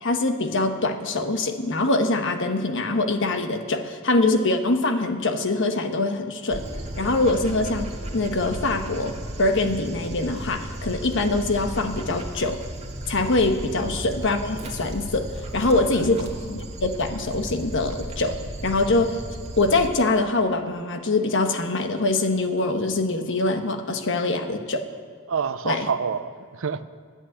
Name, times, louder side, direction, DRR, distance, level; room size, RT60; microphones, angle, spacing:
voice 1, 0.0-6.6 7.0-12.6 13.1-18.4 18.6-19.1 19.6-24.9 25.6-25.9, left 2 dB, 60° left, 6 dB, 1.2 m, -24 dB
Dog, 6.5-19.9, right 1 dB, 30° right, 1.8 m, -35 dB
voice 2, 15.7-16.3 25.3-26.8, right 6 dB, 65° right, 13 dB, 0.6 m, -28 dB
11.5 x 8.7 x 9.9 m, 2.2 s
head